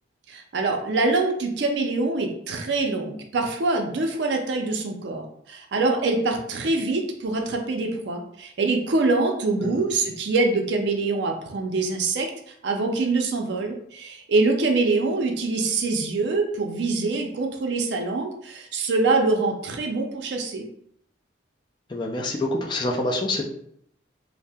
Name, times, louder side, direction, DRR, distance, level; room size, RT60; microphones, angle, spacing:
voice 1, 0.3-20.7, right 3 dB, 70° right, 3 dB, 0.4 m, -24 dB
voice 2, 21.9-23.4, left 2 dB, 25° left, 0 dB, 0.4 m, -26 dB
2.6 x 2.0 x 3.4 m, 0.70 s
head